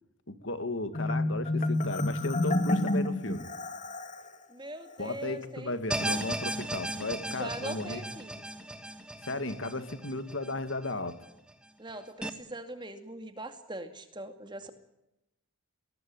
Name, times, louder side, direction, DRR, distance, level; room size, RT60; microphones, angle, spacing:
voice 1, 0.3-3.5 5.0-8.0 9.2-11.2, left 2 dB, 60° left, 10 dB, 2.0 m, -35 dB
Marimba xylophone, 0.9-4.3, left 2 dB, 35° left, 2.2 m, -29 dB
voice 2, 4.5-5.8 7.3-8.4 11.8-14.7, right 1 dB, 20° right, 7 dB, 2.2 m, -41 dB
sound 1, 5.9-11.1 11.5-11.6 12.2-12.3, right 1 dB, 5° right, 1.6 m, -36 dB
21.5 x 19.0 x 8.9 m, 0.90 s
head